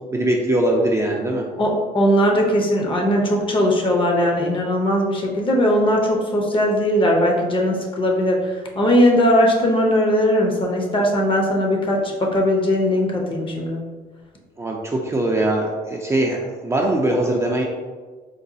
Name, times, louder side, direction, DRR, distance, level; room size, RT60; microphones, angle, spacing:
voice 1, 0.1-1.4 14.6-17.6, right 1 dB, 15° right, -1 dB, 0.4 m, -21 dB
voice 2, 1.6-13.8, equal, 30° left, 0 dB, 0.6 m, -19 dB
4.0 x 2.2 x 2.6 m, 1.4 s
cardioid pair, 110°, 17 cm